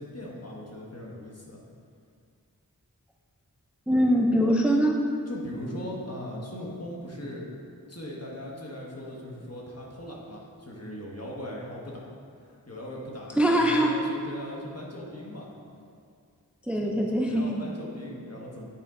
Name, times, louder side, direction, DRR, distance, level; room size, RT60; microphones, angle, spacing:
voice 1, 0.0-1.6 5.3-7.5 7.9-12.1 12.4-15.5 16.8-18.6, left 1 dB, 45° left, -3 dB, 1.3 m, -39 dB
voice 2, 3.9-5.0 13.4-13.9 16.7-17.6, equal, 5° right, 1 dB, 0.5 m, -22 dB
8.6 x 4.4 x 3.7 m, 2.3 s
wide cardioid pair, 45°, 35 cm